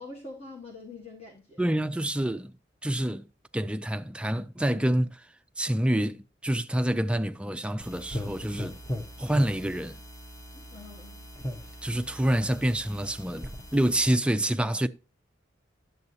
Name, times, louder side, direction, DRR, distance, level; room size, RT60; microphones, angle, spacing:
voice 1, 0.0-1.7 10.5-11.3, left 3 dB, 30° left, 1.3 m, -45 dB
voice 2, 1.6-2.5 2.8-3.3 3.5-5.3 5.6-8.8 9.2-10.0 11.8-14.9, right 1 dB, 5° right, 0.4 m, -27 dB
sound 1, 7.8-14.2, equal, 15° left, 0.9 m, -39 dB
11.0 x 7.6 x 2.7 m
head